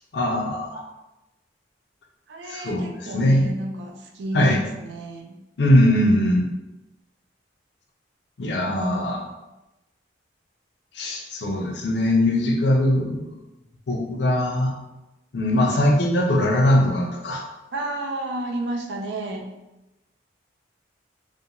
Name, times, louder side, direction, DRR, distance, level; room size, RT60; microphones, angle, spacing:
voice 1, 0.1-0.8 2.5-3.5 4.3-4.6 5.6-6.5 8.4-9.3 10.9-13.3 13.9-14.7 15.3-17.4, left 1 dB, 65° left, 1 dB, 0.5 m, -21 dB
voice 2, 2.3-5.4 8.6-9.2 17.7-19.5, right 1 dB, 70° right, 2 dB, 0.4 m, -31 dB
2.4 x 2.2 x 2.8 m, 0.98 s
head